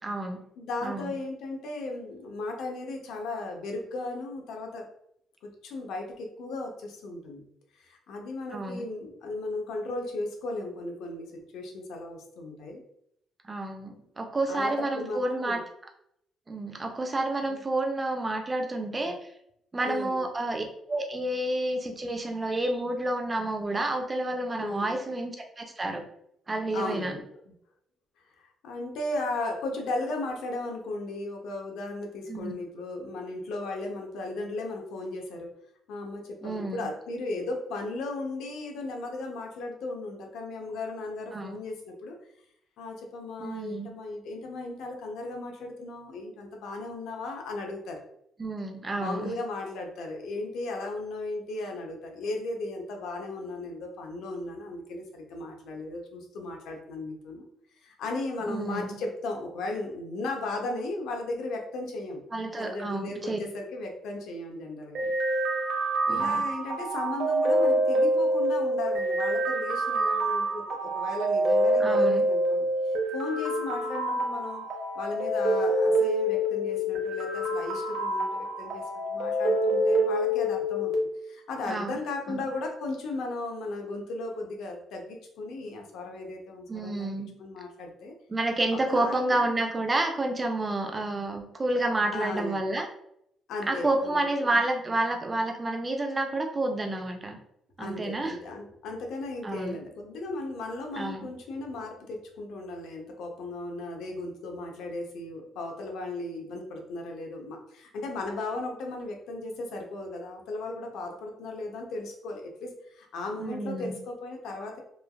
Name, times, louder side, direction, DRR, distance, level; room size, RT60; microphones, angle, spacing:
voice 1, 0.0-0.4 0.8-1.1 8.5-8.9 13.4-15.6 16.5-19.3 19.7-26.0 26.5-27.1 32.3-32.5 36.4-36.9 41.3-41.6 43.4-43.9 48.4-49.3 58.5-59.0 62.3-63.4 66.1-66.4 71.8-72.3 81.6-82.0 82.3-82.5 86.7-87.3 88.3-92.9 93.7-97.4 97.8-98.4 99.4-99.8 101.0-101.3 113.4-114.0, right 2 dB, 15° right, 5 dB, 0.3 m, -30 dB
voice 2, 0.6-4.9 5.4-7.4 7.8-12.8 14.5-15.6 17.5-17.6 19.8-20.2 24.6-24.9 26.7-27.5 28.4-35.5 35.9-42.1 42.8-48.0 49.0-57.5 57.8-62.2 62.6-65.1 66.1-74.6 75.0-80.9 81.2-87.1 87.4-88.1 88.7-89.6 92.1-92.6 93.5-94.2 94.5-94.6 97.8-114.8, left 2 dB, 75° left, 2 dB, 0.6 m, -36 dB
sound 1, 65.0-80.9, right 1 dB, 55° right, 0.6 m, -26 dB
3.1 x 2.3 x 2.3 m, 0.75 s
cardioid pair, 165°, 0 cm